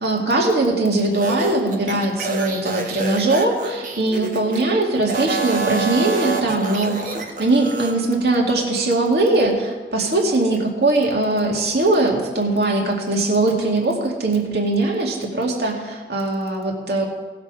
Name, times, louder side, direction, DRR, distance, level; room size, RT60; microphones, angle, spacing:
voice 1, 0.0-7.1 7.4-17.1, right 2 dB, 65° right, -1 dB, 2.2 m, -20 dB
sound 1, 1.1-4.6 5.0-7.9, right 3 dB, 45° right, 1.3 m, -27 dB
18.5 x 6.9 x 4.9 m, 1.3 s
head